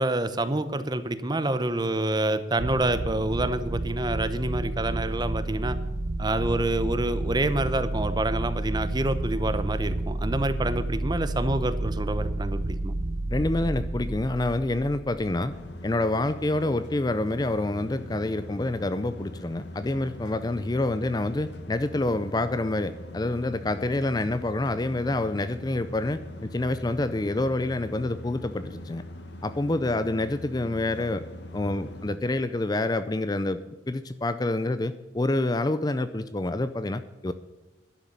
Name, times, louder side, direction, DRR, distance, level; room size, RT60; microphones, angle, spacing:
voice 1, 0.0-5.8 6.2-12.9, right 2 dB, 20° right, 11 dB, 0.7 m, -27 dB
sound 1, 2.6-15.9, right 2 dB, 75° right, 0.9 m, -31 dB
voice 2, 13.3-15.5 15.8-29.0 29.4-31.3 31.5-33.6 33.9-37.3, left 2 dB, 20° left, 12 dB, 0.4 m, -27 dB
sound 2, 15.5-32.2, left 1 dB, 60° left, 1.5 m, -42 dB
11.5 x 6.9 x 9.4 m, 1.2 s
head